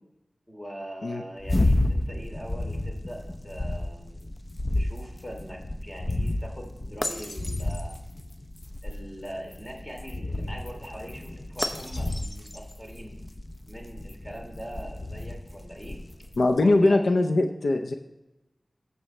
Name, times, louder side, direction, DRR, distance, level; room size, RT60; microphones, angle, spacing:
voice 1, 0.5-4.3 4.7-8.0 8.8-13.2 13.7-16.0 16.5-17.0, equal, 15° left, 0 dB, 2.9 m, -41 dB
sound 1, 1.4-16.6, left 1 dB, 35° left, 0.6 m, -31 dB
voice 2, 16.4-17.9, left 2 dB, 90° left, 5 dB, 0.6 m, -21 dB
15.0 x 6.9 x 3.2 m, 0.98 s
wide cardioid pair, 70°, 0 cm